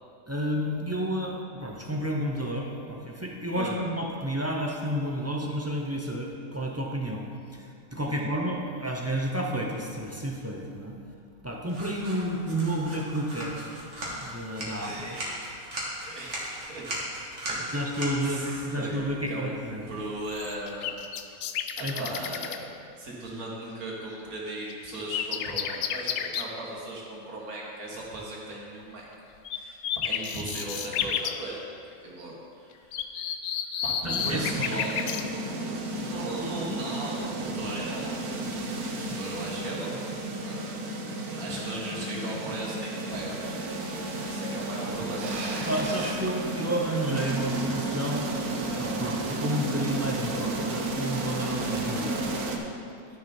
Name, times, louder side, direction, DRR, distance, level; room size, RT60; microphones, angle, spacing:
voice 1, 0.3-7.2 7.5-10.9 11.4-13.6 14.2-15.2 17.7-19.8 21.8-22.1 34.0-34.8 45.7-48.3 48.8-52.5, equal, 20° right, -1 dB, 0.4 m, -31 dB
sound 1, 11.7-20.8, right 1 dB, 50° right, 2.1 m, -38 dB
voice 2, 14.7-15.5 16.0-16.9 17.5-17.9 18.2-19.6 19.9-20.9 21.8-22.7 23.0-29.1 29.5-33.0 33.8-35.1 35.9-38.2 39.0-40.0 40.4-43.5 44.2-45.3, right 1 dB, 75° right, -3 dB, 2.0 m, -38 dB
sound 2, 20.3-22.6 24.7-26.5 29.5-29.6 29.8-31.4 32.9-35.3 38.6-38.9, left 8 dB, 70° left, 0.7 m, -31 dB
sound 3, 34.2-52.6, right 2 dB, 90° right, 1.4 m, -32 dB
11.5 x 6.5 x 4.3 m, 2.5 s
omnidirectional pair, 1.6 m